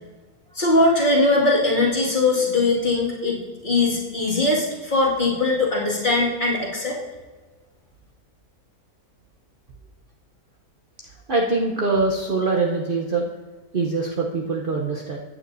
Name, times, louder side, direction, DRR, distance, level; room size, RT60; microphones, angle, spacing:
voice 1, 0.5-3.4 3.6-7.0, left 2 dB, 30° left, -4 dB, 2.1 m, -20 dB
voice 2, 11.3-13.2 13.7-15.2, right 3 dB, 45° right, -1 dB, 0.8 m, -23 dB
15.5 x 8.9 x 2.6 m, 1.3 s
omnidirectional pair, 1.6 m